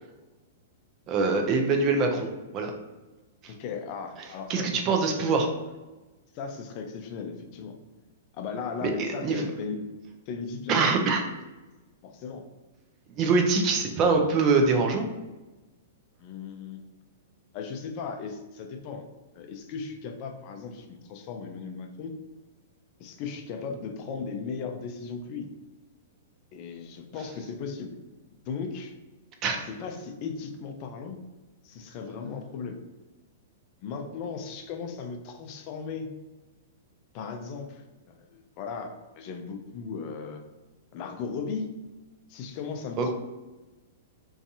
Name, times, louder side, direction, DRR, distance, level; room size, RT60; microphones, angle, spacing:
voice 1, 1.1-2.7 3.4-3.5 4.5-5.5 8.8-9.4 10.7-11.2 13.2-15.1 29.4-29.6 43.0-43.1, right 4 dB, 35° right, 3 dB, 0.4 m, -24 dB
voice 2, 3.5-4.8 5.2-5.4 6.3-7.8 8.3-9.9 10.3-11.1 12.0-12.5 16.2-16.8 17.5-19.0 19.3-22.1 23.0-25.5 26.5-28.0 28.5-28.9 29.5-31.2 31.6-32.8 33.8-36.1 37.1-40.4 40.9-41.8 42.3-43.1, left 5 dB, 45° left, 5 dB, 0.4 m, -37 dB
2.6 x 2.3 x 2.7 m, 1.1 s
hypercardioid pair, 120°, 0 cm